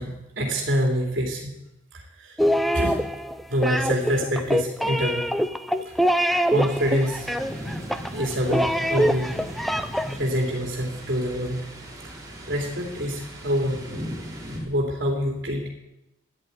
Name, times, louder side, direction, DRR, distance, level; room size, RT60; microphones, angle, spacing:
voice 1, 0.0-1.5 2.2-2.4 2.7-3.0 3.5-5.3 5.8-5.9 6.5-7.3 8.1-9.4 10.1-11.7 12.0-12.1 12.5-13.9 14.6-15.7, equal, 50° right, 0 dB, 3.1 m, -26 dB
sound 1, 2.4-10.2, equal, ahead, 0.6 m, -24 dB
Thunder, 6.6-14.6, equal, 15° right, 4.1 m, -38 dB
14.0 x 10.0 x 9.4 m, 0.90 s
head